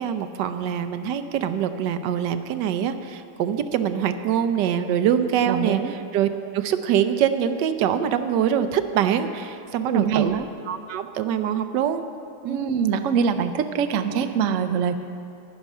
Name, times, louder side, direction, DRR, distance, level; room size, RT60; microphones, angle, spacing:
voice 1, 0.0-10.3 10.7-12.0 12.4-12.7, right 9 dB, 80° right, 9 dB, 1.3 m, -24 dB
voice 2, 5.5-5.9 9.9-10.5 12.5-15.1, right 7 dB, 65° right, 7 dB, 0.8 m, -24 dB
11.0 x 10.5 x 5.4 m, 2.5 s
omnidirectional pair, 1.8 m